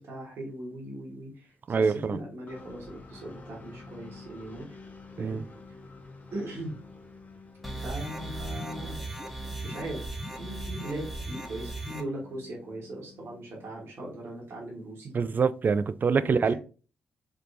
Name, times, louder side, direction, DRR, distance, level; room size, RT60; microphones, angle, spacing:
voice 1, 0.0-4.7 5.2-5.4 6.3-6.8 7.8-9.0 9.6-15.1 16.2-16.5, right 1 dB, 65° right, 1.3 m, -39 dB
voice 2, 1.7-2.2 5.2-5.4 15.1-16.5, right 5 dB, 45° right, 0.3 m, -25 dB
sound 1, 2.5-14.2, left 3 dB, 35° left, 0.8 m, -50 dB
sound 2, 7.6-12.0, right 2 dB, ahead, 1.0 m, -37 dB
3.5 x 3.0 x 2.6 m
hypercardioid pair, 40°, 5 cm